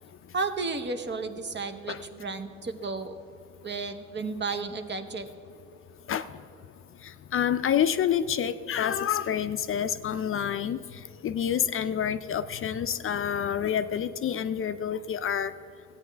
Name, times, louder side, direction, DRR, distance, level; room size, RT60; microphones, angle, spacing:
voice 1, 0.3-3.1 3.6-5.3, right 4 dB, 35° right, 8 dB, 0.8 m, -33 dB
voice 2, 7.0-15.5, left 9 dB, 45° left, 12 dB, 0.4 m, -28 dB
14.5 x 8.7 x 3.4 m, 2.7 s
cardioid pair, 90°, 30 cm